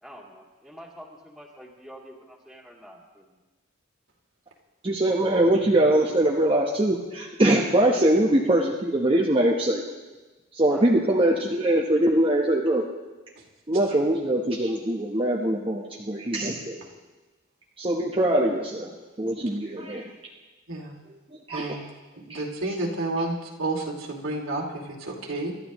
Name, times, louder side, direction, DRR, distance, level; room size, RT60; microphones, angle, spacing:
voice 1, 0.0-3.3 10.7-10.9, equal, ahead, -3 dB, 2.2 m, -45 dB
voice 2, 4.8-9.8 10.5-12.8 13.7-16.8 17.8-18.9 19.2-20.0 21.5-21.8 22.3-22.4, right 1 dB, 25° right, -3 dB, 0.9 m, -22 dB
voice 3, 21.5-21.8 22.2-25.5, right 2 dB, 85° right, -1 dB, 2.5 m, -30 dB
26.5 x 12.5 x 3.0 m, 1.2 s
head